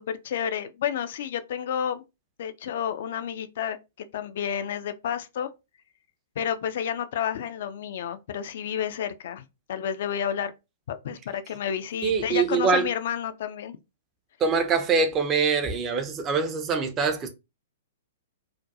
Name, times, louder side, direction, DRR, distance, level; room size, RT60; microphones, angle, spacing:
voice 1, 0.0-2.0 2.4-5.5 6.4-9.4 9.7-10.5 10.9-13.8, left 9 dB, 50° left, 0.3 m, -30 dB
voice 2, 12.0-12.9 14.4-17.3, right 5 dB, 25° right, 0.5 m, -24 dB
2.4 x 2.2 x 2.6 m
figure-of-eight pair, 110°, 0 cm